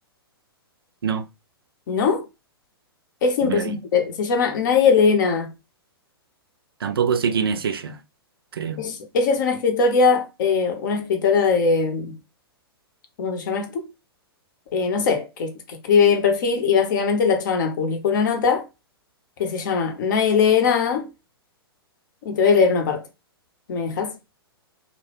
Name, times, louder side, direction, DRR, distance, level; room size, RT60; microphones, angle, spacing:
voice 1, 1.9-2.3 3.2-5.5 8.8-12.2 13.2-13.9 14.7-18.6 19.4-21.1 22.2-23.0 23.7-24.1, left 5 dB, 50° left, 0.6 m, -20 dB
voice 2, 3.4-3.8 6.8-8.0 8.5-8.8, right 7 dB, 65° right, 0.4 m, -24 dB
2.1 x 2.0 x 3.0 m
figure-of-eight pair, 110°, 13 cm